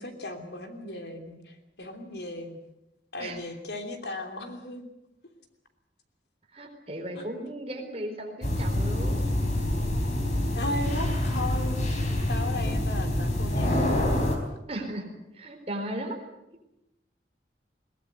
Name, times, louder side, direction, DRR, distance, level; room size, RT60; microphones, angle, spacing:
voice 1, 0.0-2.6 3.1-4.8 7.1-7.3 10.5-11.8 12.3-14.2, left 2 dB, 70° left, 5 dB, 3.0 m, -36 dB
voice 2, 6.5-9.3 14.7-15.1 15.3-16.2, right 1 dB, 35° right, 3 dB, 4.2 m, -36 dB
sound 1, 8.4-14.4, left 1 dB, 40° left, 4.1 m, -26 dB
21.5 x 19.0 x 8.1 m, 0.90 s
head